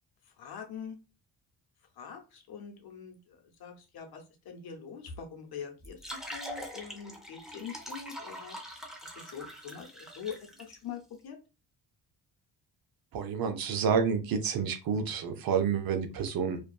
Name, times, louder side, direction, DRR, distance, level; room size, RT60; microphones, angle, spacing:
voice 1, 0.4-1.0 2.0-8.6 9.0-11.4, left 7 dB, 60° left, 4 dB, 0.8 m, -44 dB
sound 1, 5.8-10.7, equal, ahead, 0.5 m, -43 dB
voice 2, 13.1-16.6, right 6 dB, 55° right, 8 dB, 0.6 m, -29 dB
2.5 x 2.3 x 2.2 m, 0.29 s
cardioid pair, 95°, 43 cm